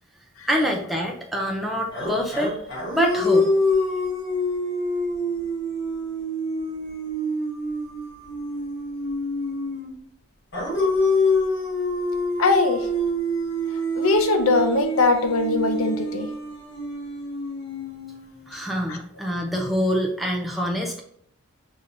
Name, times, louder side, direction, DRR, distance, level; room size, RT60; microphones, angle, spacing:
voice 1, 0.5-2.6 2.9-3.5 18.5-21.0, equal, ahead, -1 dB, 0.5 m, -25 dB
sound 1, 1.9-10.0 10.5-18.6, left 1 dB, 50° left, 1.1 m, -26 dB
voice 2, 12.4-12.9 14.0-16.3 18.9-19.0, left 3 dB, 75° left, 6 dB, 0.6 m, -21 dB
6.6 x 2.7 x 2.6 m, 0.68 s
head